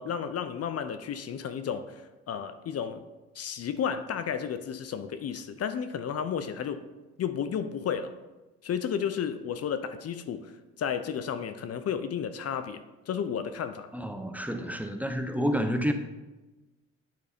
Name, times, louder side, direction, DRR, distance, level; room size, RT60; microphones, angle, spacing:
voice 1, 0.0-2.0 2.3-3.0 3.4-6.9 7.2-8.1 8.6-10.5 10.8-13.9, left 7 dB, 55° left, 11 dB, 0.6 m, -32 dB
voice 2, 13.9-15.9, equal, 5° right, 6 dB, 0.7 m, -29 dB
9.4 x 4.1 x 5.0 m, 1.1 s
cardioid pair, 90°, 30 cm